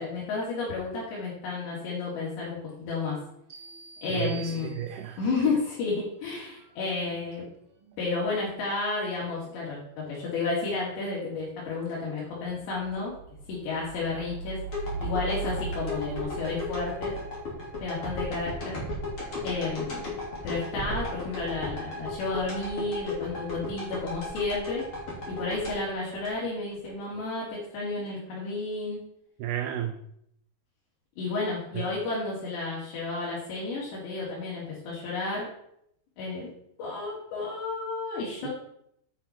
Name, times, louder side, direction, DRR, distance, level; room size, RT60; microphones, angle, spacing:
voice 1, 0.0-3.2 4.0-4.7 5.2-7.5 8.0-13.1 13.5-14.6 15.0-17.1 17.8-18.8 19.4-20.0 20.4-24.9 25.3-29.0 31.2-35.5 36.2-36.5 36.8-38.5, left 3 dB, 75° left, -7 dB, 4.7 m, -32 dB
Big Bang pitchup, 2.9-4.3 4.5-19.6 20.3-20.9, right 4 dB, 60° right, 3.1 m, -42 dB
sound 1, 3.5-5.3, right 5 dB, 20° right, 2.4 m, -47 dB
voice 2, 4.1-5.2 29.4-30.0 38.4-38.5, right 11 dB, 80° right, 4 dB, 2.6 m, -32 dB
sound 2, 14.7-26.9 27.3-27.4, left 2 dB, 35° left, 3.1 m, -35 dB
8.5 x 5.8 x 5.8 m, 0.74 s
omnidirectional pair, 5.0 m